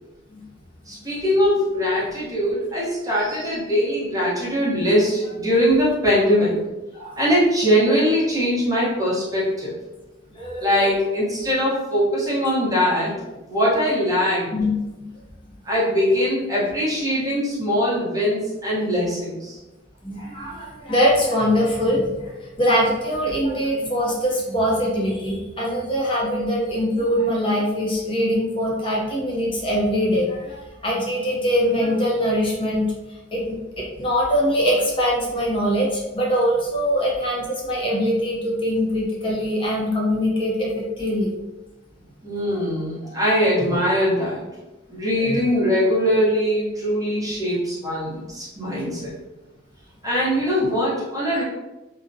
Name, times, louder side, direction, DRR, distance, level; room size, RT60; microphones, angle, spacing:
voice 1, 0.9-6.5 7.2-9.7 10.6-13.1 13.5-14.5 15.6-19.6 42.2-44.4 44.9-49.2 50.0-51.4, equal, 20° right, -8 dB, 0.8 m, -21 dB
voice 2, 10.3-10.8 14.5-14.8 20.0-32.9 33.3-41.3 45.2-45.4 51.3-51.4, equal, 25° left, -3 dB, 0.6 m, -23 dB
2.4 x 2.1 x 2.5 m, 1.1 s
head